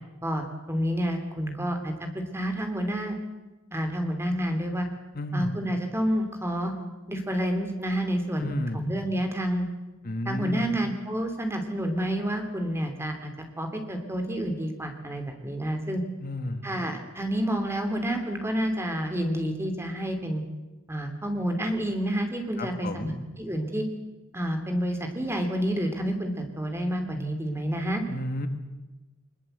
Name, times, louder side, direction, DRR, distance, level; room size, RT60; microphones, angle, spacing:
voice 1, 0.2-1.9 2.3-3.2 3.7-4.9 5.3-6.7 7.1-9.7 10.2-13.3 13.6-16.0 16.6-20.4 20.9-23.1 23.4-23.8 24.3-28.0, equal, 10° right, 5 dB, 3.0 m, -29 dB
voice 2, 5.1-5.5 8.4-8.9 10.0-10.7 16.2-16.7 22.6-23.1 28.1-28.5, left 1 dB, 45° left, 8 dB, 1.6 m, -32 dB
22.5 x 21.0 x 8.0 m, 1.1 s
head